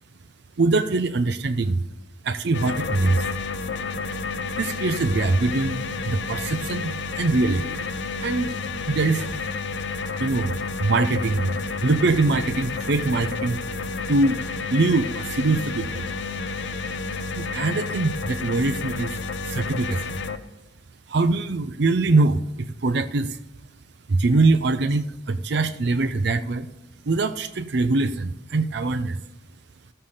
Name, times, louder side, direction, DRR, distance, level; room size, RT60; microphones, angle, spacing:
voice 1, 0.6-1.9 2.2-3.2 4.6-7.8 8.2-8.6 8.9-9.3 10.2-13.6 14.1-14.4 14.7-16.1 17.3-19.1 19.5-20.2 21.1-23.4 24.1-26.7 27.0-29.2, right 3 dB, 55° right, 9 dB, 0.5 m, -23 dB
sound 1, 2.5-20.4, left 4 dB, 60° left, 0.6 m, -30 dB
13.5 x 6.7 x 5.6 m, 0.86 s
head